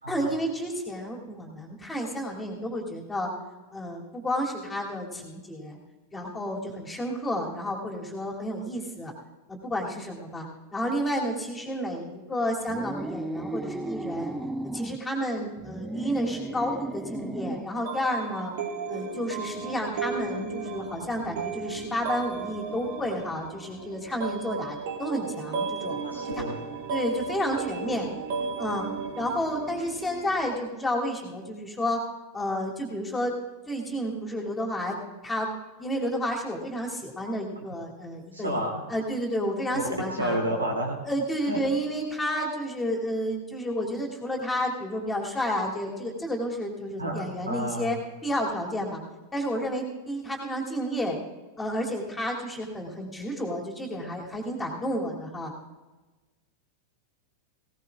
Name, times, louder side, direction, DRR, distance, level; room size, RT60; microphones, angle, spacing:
voice 1, 0.1-3.3 3.7-5.8 6.1-9.1 9.5-10.5 10.7-14.3 14.7-18.5 18.9-26.0 26.4-26.5 26.9-28.1 28.6-28.9 29.2-32.0 32.3-33.4 33.7-35.0 35.2-35.5 35.8-40.4 41.1-48.0 48.2-49.0 49.3-51.2 51.6-55.5, equal, 10° left, -1 dB, 2.7 m, -31 dB
sound 1, 12.7-15.0 15.6-17.8, right 1 dB, 5° right, 0.5 m, -34 dB
sound 2, 17.9-30.4, right 4 dB, 50° right, 1.7 m, -35 dB
voice 2, 26.0-26.6 38.3-38.8 39.7-39.8 40.1-41.0 41.5-41.6 47.0-48.0, right 1 dB, 80° right, 1 dB, 2.6 m, -30 dB
19.0 x 18.0 x 2.4 m, 1.2 s
figure-of-eight pair, 90°, 0 cm